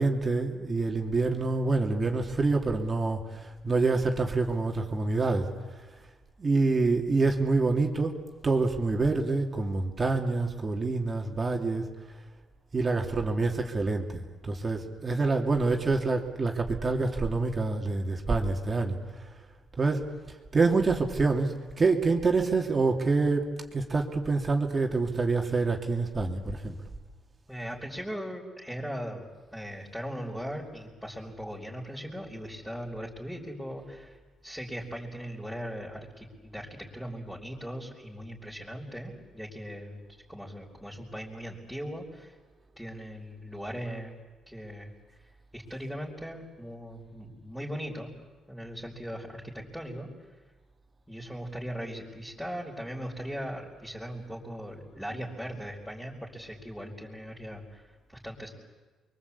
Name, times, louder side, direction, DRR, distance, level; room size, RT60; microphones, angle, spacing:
voice 1, 0.0-5.5 6.4-8.2 8.4-11.8 12.7-19.0 19.8-20.1 20.5-23.5 23.7-26.8, right 3 dB, 35° right, 2 dB, 3.0 m, -26 dB
voice 2, 27.5-29.2 29.5-34.2 34.4-40.0 40.3-42.3 42.8-44.1 44.5-44.9 45.5-48.1 48.5-50.1 51.1-58.5, equal, 5° left, -4 dB, 5.0 m, -39 dB
29.5 x 23.5 x 8.6 m, 1.3 s
cardioid pair, 90°, 0 cm